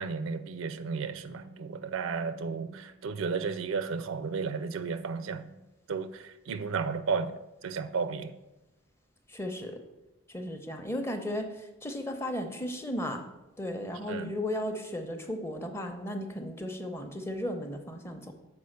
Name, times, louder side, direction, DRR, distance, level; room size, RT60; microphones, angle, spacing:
voice 1, 0.0-5.6 5.9-8.4 14.1-14.3, right 5 dB, 75° right, 12 dB, 0.4 m, -33 dB
voice 2, 9.3-9.8 10.3-13.2 13.6-18.3, left 1 dB, 10° left, 5 dB, 0.7 m, -35 dB
6.9 x 4.7 x 6.4 m, 0.99 s
head